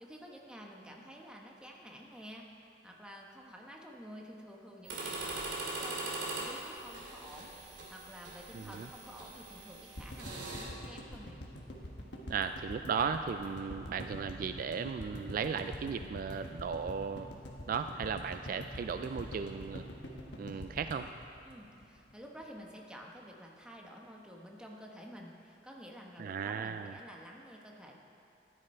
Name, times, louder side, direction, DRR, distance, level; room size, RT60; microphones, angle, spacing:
voice 1, 0.0-2.5 2.8-11.4 21.4-27.9, equal, 5° right, -1 dB, 1.2 m, -50 dB
sound 1, 4.8-10.6, right 2 dB, 80° right, 2.7 m, -41 dB
voice 2, 8.5-8.9 12.3-17.3 17.7-19.8 20.4-21.1 26.2-27.0, right 6 dB, 50° right, 9 dB, 0.3 m, -36 dB
sound 2, 10.0-22.1 22.4-22.5 22.7-22.8, left 1 dB, 75° left, 1.4 m, -45 dB
14.5 x 9.9 x 4.4 m, 2.6 s
head